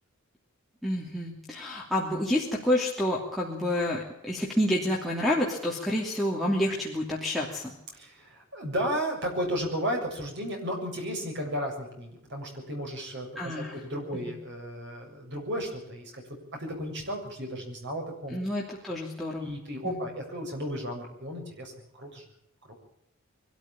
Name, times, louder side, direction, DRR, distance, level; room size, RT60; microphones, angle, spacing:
voice 1, 0.8-7.7 13.3-13.8 14.3-14.4 18.3-19.5 19.8-20.0, left 1 dB, ahead, -5 dB, 2.9 m, -29 dB
voice 2, 7.9-16.2 16.6-18.4 19.3-22.3 22.7-22.8, equal, 55° right, 2 dB, 7.0 m, -34 dB
23.0 x 13.5 x 8.7 m, 0.79 s
head